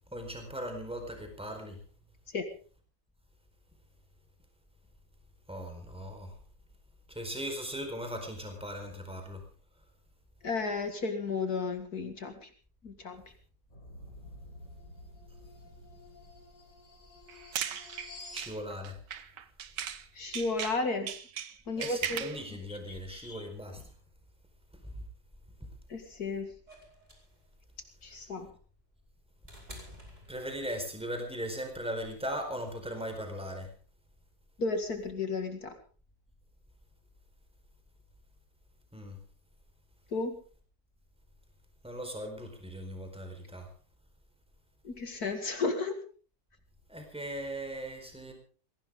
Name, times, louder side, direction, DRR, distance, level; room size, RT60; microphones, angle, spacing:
voice 1, 0.1-1.8 5.5-6.3 7.1-9.4 18.3-19.0 21.8-23.9 24.8-25.0 28.2-28.3 30.3-33.7 38.9-39.2 41.8-43.7 46.9-48.3, equal, 5° right, 4 dB, 4.5 m, -39 dB
voice 2, 10.4-12.5 12.8-13.2 20.1-21.1 21.7-22.3 22.7-23.5 25.9-26.5 28.0-28.5 34.6-35.7 40.1-40.4 44.8-45.9, left 3 dB, 55° left, 6 dB, 2.5 m, -33 dB
sound 1, 13.7-18.5, left 1 dB, 90° left, 5.7 m, -50 dB
sound 2, 17.3-20.1 20.3-22.4, right 8 dB, 75° right, 1.8 m, -38 dB
sound 3, 26.7-30.9 32.2-32.3, equal, 20° right, 5.2 m, -51 dB
22.0 x 17.5 x 3.8 m, 0.40 s
omnidirectional pair, 1.9 m